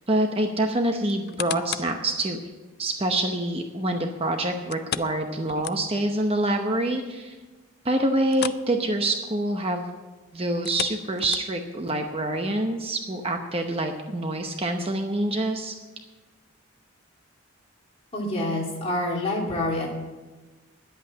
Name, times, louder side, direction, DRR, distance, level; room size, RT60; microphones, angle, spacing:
voice 1, 0.1-2.4 2.8-7.4 7.8-9.8 10.3-15.7, right 1 dB, 25° right, 4 dB, 0.8 m, -26 dB
sound 1, 1.1-2.0 2.5-2.6 4.7-6.2 6.5-6.6 7.0-7.1 8.3-8.7 9.0-9.2 10.5-11.8 12.4-12.5, left 10 dB, 50° left, 0.4 m, -34 dB
voice 2, 18.1-19.9, left 1 dB, 30° left, -3 dB, 2.8 m, -27 dB
10.5 x 8.5 x 8.6 m, 1.2 s
head